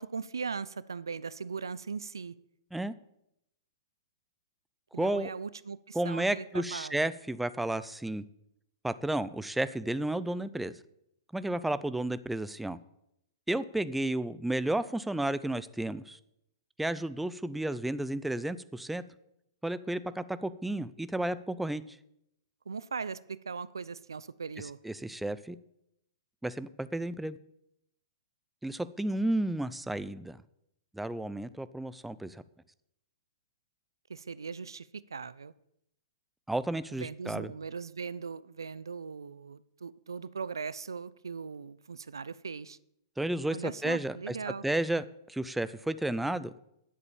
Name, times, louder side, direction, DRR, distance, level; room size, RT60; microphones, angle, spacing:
voice 1, 0.0-2.3 4.9-7.0 22.7-24.8 34.1-35.5 37.0-42.8 43.5-44.6, right 5 dB, 85° right, 19 dB, 0.5 m, -39 dB
voice 2, 5.0-5.3 5.9-8.2 8.8-10.7 11.3-12.8 13.5-16.2 16.8-19.0 19.6-22.0 24.8-25.6 26.4-27.4 28.6-30.4 30.9-32.4 36.5-37.5 43.2-44.4 44.6-46.5, right 1 dB, 5° right, 15 dB, 0.5 m, -32 dB
10.0 x 8.0 x 7.1 m, 0.79 s
hypercardioid pair, 120°, 2 cm